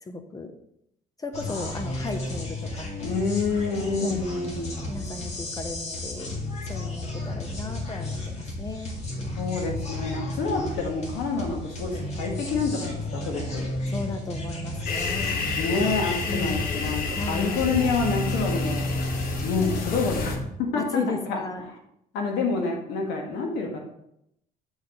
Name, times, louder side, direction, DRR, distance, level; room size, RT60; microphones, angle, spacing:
voice 1, 0.0-0.5 1.2-2.9 4.0-4.2 4.9-6.3 6.6-8.9 13.9-15.4 16.3-16.6 17.1-17.7 20.7-21.7, left 3 dB, 20° left, 7 dB, 0.8 m, -35 dB
sound 1, 1.3-20.4, left 1 dB, 40° left, 1.9 m, -33 dB
voice 2, 3.0-4.8 9.4-13.8 15.6-18.9 19.4-21.4 22.1-23.8, left 4 dB, 90° left, 1 dB, 1.6 m, -28 dB
sound 2, 14.9-20.4, left 4 dB, 60° left, 1.1 m, -31 dB
8.0 x 4.4 x 3.9 m, 0.77 s
cardioid pair, 110°, 17 cm